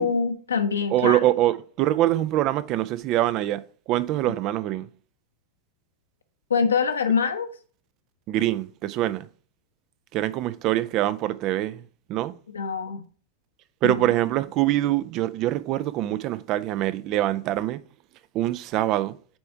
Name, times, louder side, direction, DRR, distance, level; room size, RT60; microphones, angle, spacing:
voice 1, 0.0-1.2 6.5-7.5 12.5-13.1 13.8-14.1, left 6 dB, 70° left, 1.1 m, -24 dB
voice 2, 0.9-3.6 3.9-4.9 8.3-9.3 10.1-11.8 12.1-12.3 13.8-17.8 18.3-19.2, right 14 dB, 40° right, 0.5 m, -24 dB
8.8 x 4.4 x 4.5 m
figure-of-eight pair, 90°, 0 cm